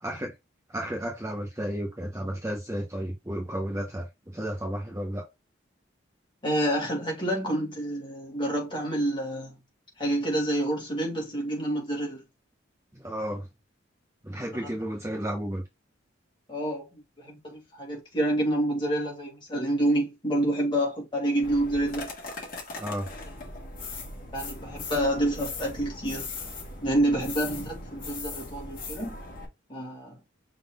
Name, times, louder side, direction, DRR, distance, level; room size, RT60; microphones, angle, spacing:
voice 1, 0.0-0.3 0.7-5.2 12.9-13.5 14.2-15.6 22.8-23.1, equal, 15° right, 1.0 m, -33 dB
voice 2, 6.4-9.6 10.0-12.2 16.5-22.1 24.3-26.3 26.8-29.2 29.7-30.2, right 1 dB, 25° left, 2.2 m, -28 dB
sound 1, 21.4-29.4, left 3 dB, 45° left, 1.5 m, -39 dB
5.8 x 3.8 x 2.4 m
head